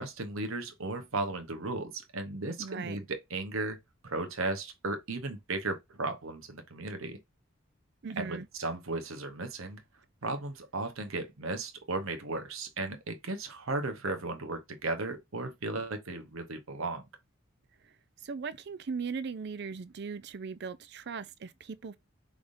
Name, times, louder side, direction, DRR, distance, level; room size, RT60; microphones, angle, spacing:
voice 1, 0.0-3.8 4.0-7.2 8.2-9.8 10.2-17.1, right 2 dB, 85° right, 1.1 m, -35 dB
voice 2, 2.6-3.0 8.0-8.4 18.2-22.0, right 5 dB, 55° right, 0.5 m, -38 dB
5.1 x 3.5 x 2.6 m
head